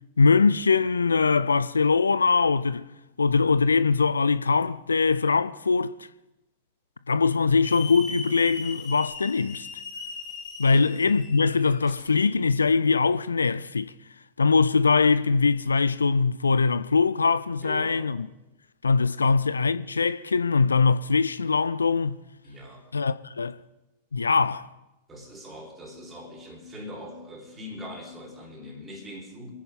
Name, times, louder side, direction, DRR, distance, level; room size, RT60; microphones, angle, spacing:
voice 1, 0.2-2.9 3.2-5.9 7.1-9.7 10.6-13.9 14.4-18.3 18.8-22.2 22.9-23.6 24.1-24.7, left 4 dB, 75° left, 0.4 m, -22 dB
Hiss / Alarm, 7.6-12.4, left 4 dB, 30° left, 3.8 m, -39 dB
voice 2, 17.6-18.1 19.2-19.4 22.4-22.9 25.1-29.5, equal, 20° right, 3.9 m, -42 dB
26.0 x 9.9 x 3.6 m
figure-of-eight pair, 90°, 0 cm